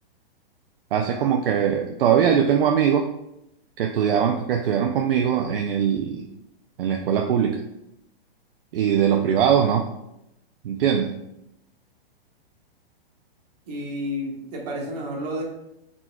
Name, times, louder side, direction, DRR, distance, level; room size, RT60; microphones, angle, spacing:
voice 1, 0.9-3.1 3.8-6.3 6.8-7.6 8.7-9.9 10.6-11.1, right 8 dB, 65° right, 3 dB, 0.5 m, -21 dB
voice 2, 13.7-15.4, equal, 40° right, -1 dB, 1.1 m, -31 dB
4.3 x 4.2 x 2.3 m, 0.84 s
hypercardioid pair, 165°, 30 cm